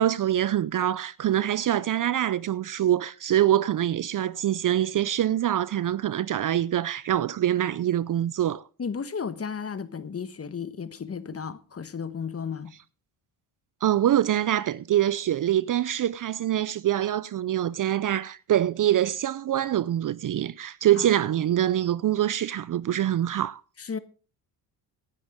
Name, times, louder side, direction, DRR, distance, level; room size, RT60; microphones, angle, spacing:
voice 1, 0.0-8.6 13.8-23.6, right 11 dB, 40° right, 0.6 m, -24 dB
voice 2, 8.8-12.7 20.9-21.1 23.8-24.0, left 6 dB, 30° left, 1.3 m, -34 dB
18.0 x 10.5 x 3.7 m
supercardioid pair, 65°, 48 cm